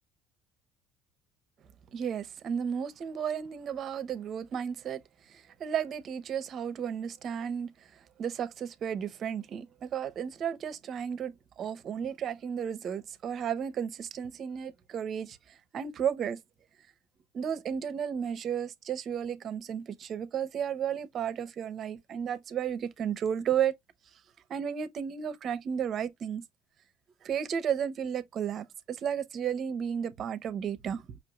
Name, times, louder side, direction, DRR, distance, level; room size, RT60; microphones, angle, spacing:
voice 1, 1.9-5.0 5.3-16.4 17.3-23.7 24.5-26.4 27.2-31.2, right 8 dB, 50° right, 0.8 m, -33 dB
5.5 x 2.7 x 2.4 m
hypercardioid pair, 70°, 0 cm